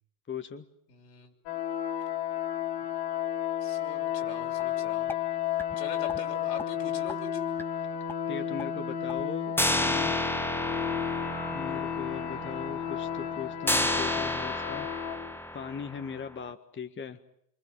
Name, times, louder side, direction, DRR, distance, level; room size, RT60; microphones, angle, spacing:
voice 1, 0.3-0.7 8.3-10.2 11.5-14.9 15.5-17.2, left 6 dB, 25° left, 8 dB, 1.7 m, -39 dB
voice 2, 0.9-1.3 3.6-5.1 5.8-7.4, left 6 dB, 85° left, 1 dB, 6.4 m, -42 dB
sound 1, 1.5-15.2, left 9 dB, 65° left, 4.3 m, -32 dB
sound 2, 4.6-4.7 5.1-5.2 5.6-5.8 6.1-6.2 6.6-6.7 7.1-7.2 7.6-7.7 8.1-8.2 8.6-8.7 9.1-9.2 9.6-16.3, left 1 dB, 5° left, 1.5 m, -32 dB
27.0 x 25.0 x 7.9 m, 0.74 s
hypercardioid pair, 85°, 48 cm